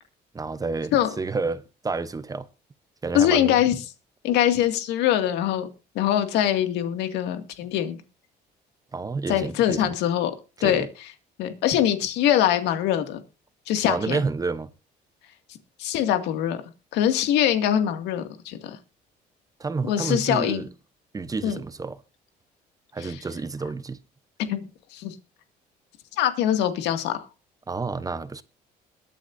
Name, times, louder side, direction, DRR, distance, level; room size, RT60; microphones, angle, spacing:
voice 1, 0.3-2.5 3.0-3.6 8.9-9.9 10.6-10.9 13.9-14.7 19.6-20.7 21.1-22.0 22.9-24.0 27.7-28.4, right 4 dB, 20° right, 0.8 m, -29 dB
voice 2, 3.1-3.8 4.2-5.7 5.9-8.0 9.3-10.3 10.6-10.8 11.4-13.2 13.7-14.2 15.8-16.6 16.9-18.8 19.9-20.7 21.4-21.6 23.0-23.1 24.5-24.6 24.9-25.2 26.2-27.3, left 11 dB, 90° left, 2.2 m, -23 dB
22.0 x 9.1 x 2.7 m
cardioid pair, 110°, 17 cm